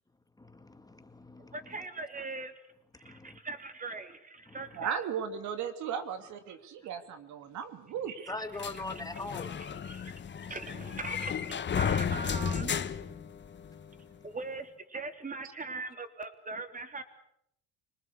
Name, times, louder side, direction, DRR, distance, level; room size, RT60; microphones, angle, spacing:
voice 1, 0.4-1.5 3.0-3.4 8.3-9.5, left 2 dB, 10° left, 9 dB, 2.0 m, -41 dB
voice 2, 1.4-2.5 3.0-5.0 8.2-8.3 8.7-13.1 14.2-17.0, right 3 dB, 25° right, 8 dB, 3.4 m, -41 dB
voice 3, 4.8-8.3, right 7 dB, 75° right, 8 dB, 2.8 m, -36 dB
sound 1, 8.6-13.9, left 7 dB, 40° left, 1.3 m, -34 dB
25.5 x 19.5 x 8.4 m, 0.74 s
cardioid pair, 90°, 29 cm